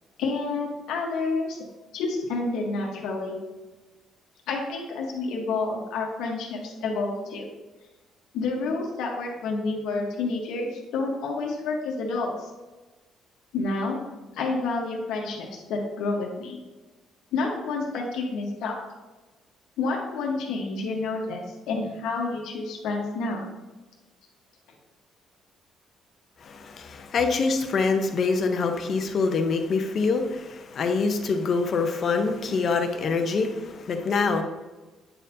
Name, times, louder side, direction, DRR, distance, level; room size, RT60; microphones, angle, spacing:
voice 1, 0.2-1.6 1.9-3.3 4.5-7.5 8.3-12.5 13.5-14.0 14.4-16.6 17.3-18.8 19.8-23.5, left 3 dB, 85° left, -1 dB, 1.2 m, -29 dB
voice 2, 26.4-34.4, left 4 dB, 45° left, 6 dB, 0.7 m, -25 dB
8.7 x 4.4 x 2.7 m, 1.2 s
cardioid pair, 145°, 0 cm